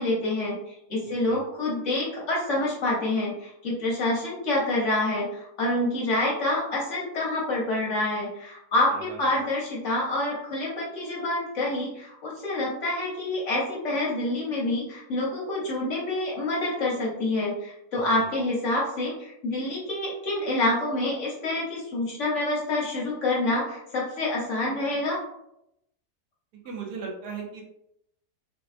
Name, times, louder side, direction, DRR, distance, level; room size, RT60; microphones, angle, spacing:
voice 1, 0.0-25.2, left 2 dB, 55° left, -4 dB, 1.0 m, -27 dB
voice 2, 26.6-27.6, right 5 dB, 75° right, 0 dB, 1.2 m, -37 dB
3.5 x 2.3 x 2.4 m, 0.80 s
omnidirectional pair, 1.7 m